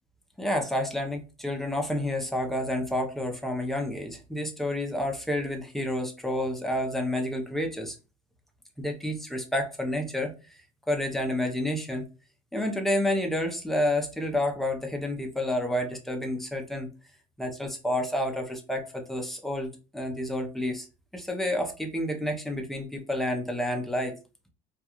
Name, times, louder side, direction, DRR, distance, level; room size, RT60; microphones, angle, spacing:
voice 1, 0.4-8.0 8.8-10.3 10.9-12.0 12.5-16.9 17.4-20.9 21.1-24.1, left 1 dB, ahead, 0.5 m, -29 dB
2.4 x 2.3 x 2.8 m
cardioid pair, 135°, 18 cm